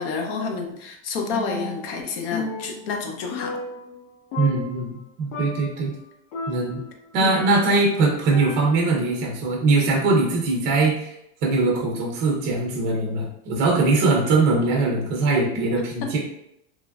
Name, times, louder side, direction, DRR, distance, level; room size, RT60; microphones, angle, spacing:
voice 1, 0.0-3.6 7.2-7.6 16.0-16.1, left 4 dB, 45° left, 3 dB, 0.5 m, -29 dB
Percussion, 1.3-2.0 2.3-4.1 4.3-5.0 5.3-5.8 6.3-7.9 8.3-9.0, left 3 dB, 75° left, 0.8 m, -34 dB
voice 2, 4.4-5.9 6.5-6.8 7.1-11.1 11.4-16.2, right 3 dB, 25° right, -2 dB, 0.5 m, -21 dB
3.0 x 2.5 x 2.2 m, 0.80 s
supercardioid pair, 170°, 41 cm